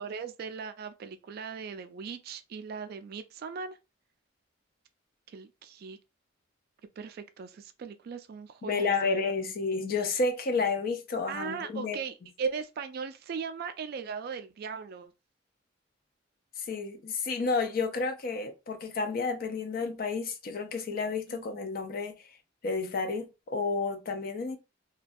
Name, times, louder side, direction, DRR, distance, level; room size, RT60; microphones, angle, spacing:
voice 1, 0.0-3.8 5.3-6.0 7.0-9.5 11.3-15.1 21.3-21.4, right 6 dB, 55° right, 0.3 m, -38 dB
voice 2, 8.6-12.0 16.6-22.1 22.6-24.6, left 4 dB, 50° left, 0.4 m, -31 dB
2.3 x 2.2 x 2.5 m
head